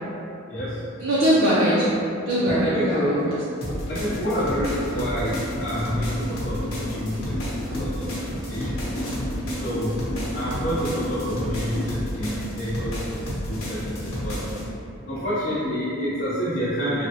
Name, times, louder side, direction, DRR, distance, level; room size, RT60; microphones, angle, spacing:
voice 1, 0.5-0.8 2.7-3.3 3.9-8.8 9.6-10.0 10.3-14.4 15.1-17.1, equal, 40° left, -10 dB, 0.4 m, -28 dB
voice 2, 1.0-1.9 2.3-3.4 10.3-10.5 10.8-10.9, right 1 dB, 80° right, -8 dB, 0.5 m, -21 dB
sound 1, 2.5-2.7 2.9-12.1, left 1 dB, 30° right, 0.7 m, -35 dB
sound 2, 3.6-14.6, equal, 90° left, 0.8 m, -31 dB
3.3 x 2.1 x 2.7 m, 2.6 s
head